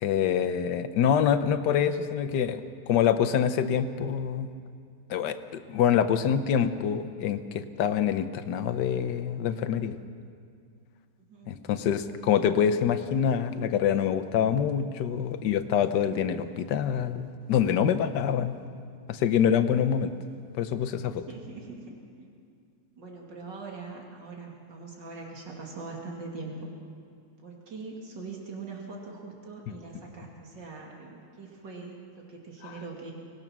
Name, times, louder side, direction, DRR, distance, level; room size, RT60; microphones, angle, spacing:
voice 1, 0.0-4.5 5.1-10.0 11.5-18.6 19.1-20.1 20.6-21.2 32.6-32.7, left 8 dB, 75° left, 10 dB, 1.5 m, -26 dB
voice 2, 21.1-22.3 23.0-26.7 27.4-33.1, right 3 dB, 85° right, -1 dB, 3.1 m, -42 dB
25.0 x 19.0 x 6.1 m, 2.3 s
omnidirectional pair, 1.9 m